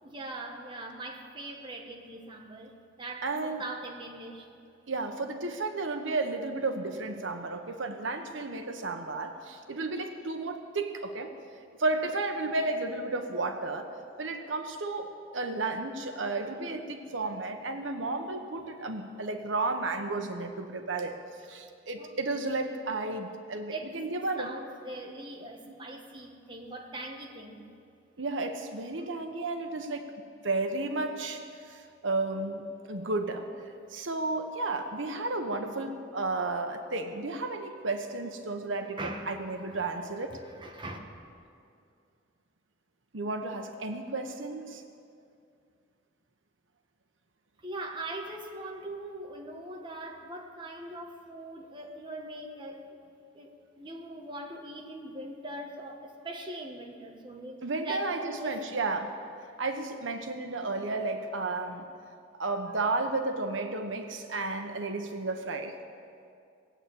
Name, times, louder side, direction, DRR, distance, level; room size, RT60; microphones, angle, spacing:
voice 1, 0.0-3.3 3.6-4.5 22.0-22.5 23.7-23.9 24.4-27.7 39.0-41.0 47.6-53.0 53.3-58.7, right 2 dB, 25° right, 1 dB, 1.5 m, -41 dB
voice 2, 3.2-3.6 4.9-11.3 11.8-13.9 14.2-21.2 21.5-24.5 25.7-25.8 28.2-30.1 30.4-33.5 33.9-40.4 43.1-44.8 57.6-59.1 59.6-61.9 62.4-65.7, right 3 dB, 85° right, 6 dB, 1.1 m, -33 dB
19.0 x 8.3 x 8.7 m, 2.4 s
head